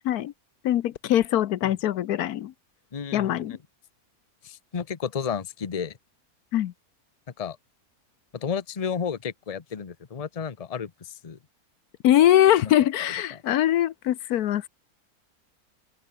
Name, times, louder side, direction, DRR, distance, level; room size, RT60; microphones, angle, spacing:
voice 1, 0.6-2.5 3.1-3.6 6.5-6.7 12.0-14.7, left 12 dB, 80° left, 1.2 m, -22 dB
voice 2, 2.9-3.6 4.4-6.0 7.4-7.6 8.3-11.4 12.6-12.7 13.3-13.4, left 6 dB, 30° left, 0.9 m, -32 dB
open air
omnidirectional pair, 1.6 m